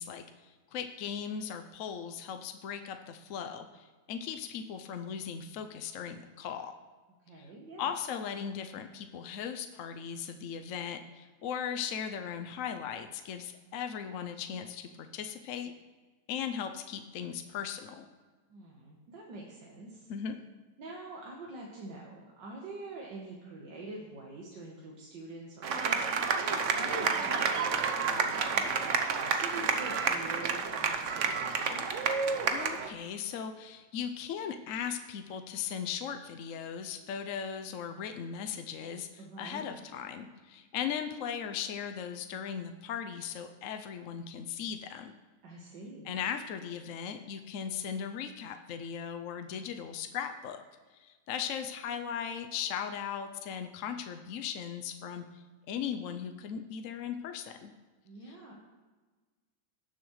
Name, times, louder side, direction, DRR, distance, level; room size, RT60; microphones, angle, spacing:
voice 1, 0.0-6.7 7.4-7.5 7.8-15.7 16.3-18.0 20.1-20.3 32.5-45.1 46.1-50.6 50.9-57.7 58.3-58.4, left 8 dB, 65° left, 7 dB, 0.8 m, -38 dB
voice 2, 7.2-7.9 18.5-20.1 20.8-31.9 39.2-39.7 45.4-46.1 58.1-58.5, right 2 dB, 80° right, -2 dB, 1.8 m, -46 dB
sound 1, 25.6-32.9, right 5 dB, 55° right, 0.9 m, -30 dB
18.0 x 7.1 x 3.1 m, 1.3 s
omnidirectional pair, 1.9 m